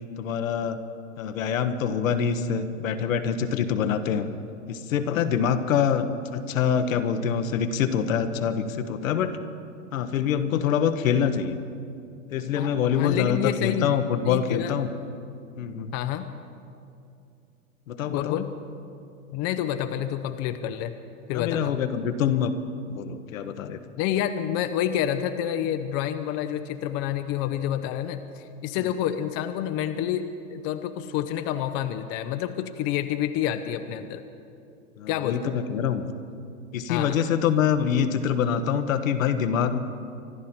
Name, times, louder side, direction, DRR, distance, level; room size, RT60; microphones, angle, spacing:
voice 1, 0.2-0.8 1.2-4.3 4.7-9.4 9.9-11.6 12.3-14.9 15.6-15.9 17.9-18.4 21.3-22.5 22.9-23.8 35.0-36.0 36.7-39.8, left 7 dB, 70° left, 8 dB, 1.2 m, -25 dB
voice 2, 12.6-13.9 14.3-14.7 15.9-16.3 18.1-18.5 19.3-20.9 21.3-21.7 24.0-34.2 35.1-35.5 36.9-37.2, left 10 dB, 35° left, 9 dB, 0.7 m, -28 dB
25.0 x 12.0 x 4.4 m, 2.5 s
hypercardioid pair, 110°, 42 cm